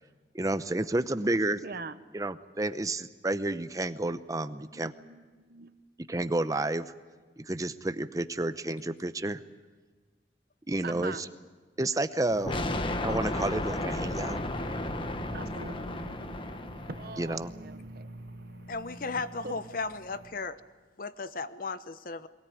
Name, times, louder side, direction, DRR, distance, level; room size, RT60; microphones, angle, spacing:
voice 1, 0.3-1.6 2.1-4.9 6.1-6.9 7.4-9.4 10.7-11.3 11.8-12.6 13.0-14.4 17.2-17.5, right 2 dB, 20° right, 12 dB, 0.7 m, -30 dB
voice 2, 1.6-2.0 4.7-5.7 10.8-11.2 15.3-16.0 16.9-18.1 19.4-19.6, right 3 dB, 55° right, 12 dB, 0.9 m, -42 dB
sound 1, 12.3-20.3, equal, 75° right, 4.3 m, -44 dB
sound 2, 12.5-17.3, left 1 dB, 30° left, 1.0 m, -34 dB
voice 3, 18.7-20.6 21.0-22.3, left 3 dB, 50° left, 13 dB, 0.8 m, -35 dB
22.5 x 17.5 x 9.3 m, 1.4 s
head